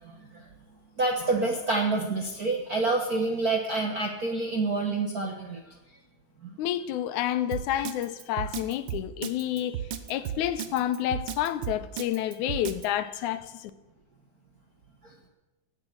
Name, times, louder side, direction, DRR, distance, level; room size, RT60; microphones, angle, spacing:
voice 1, 0.0-0.5 1.0-5.6 6.4-6.5 15.0-15.3, right 3 dB, 55° right, 1.0 m, -28 dB
voice 2, 6.6-9.8 10.1-13.7, left 12 dB, 85° left, 2.2 m, -29 dB
Drum kit, 7.5-12.9, right 9 dB, 85° right, 1.0 m, -34 dB
16.0 x 8.8 x 6.4 m
omnidirectional pair, 3.4 m